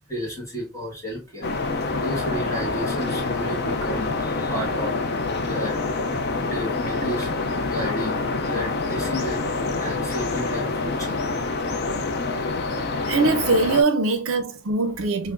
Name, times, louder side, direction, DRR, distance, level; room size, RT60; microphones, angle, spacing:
voice 1, 0.0-1.6 1.9-5.8 6.1-11.5, equal, 15° left, 1.3 m, -33 dB
sound 1, 1.4-13.8, left 3 dB, 45° left, 0.4 m, -26 dB
voice 2, 13.1-15.3, right 3 dB, 65° right, 0.6 m, -22 dB
5.6 x 2.0 x 2.4 m
head